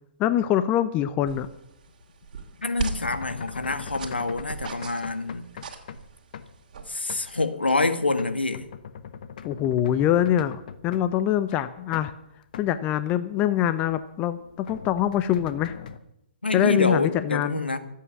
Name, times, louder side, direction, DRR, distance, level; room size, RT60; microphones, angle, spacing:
voice 1, 0.2-1.5 9.4-12.1 12.6-15.7 16.5-17.6, left 11 dB, 25° left, 0.7 m, -24 dB
sound 1, 1.1-6.1 6.3-6.5 7.1-7.5 7.8-11.2 11.5-12.1 12.4-12.8 13.1-13.2 13.8-16.0, left 6 dB, 55° left, 1.2 m, -41 dB
sound 2, 1.3-7.5, right 6 dB, 50° right, 2.5 m, -39 dB
voice 2, 2.6-5.5 6.9-8.7 16.4-17.8, left 3 dB, 80° left, 1.6 m, -26 dB
24.5 x 8.5 x 6.1 m
figure-of-eight pair, 120°, 5 cm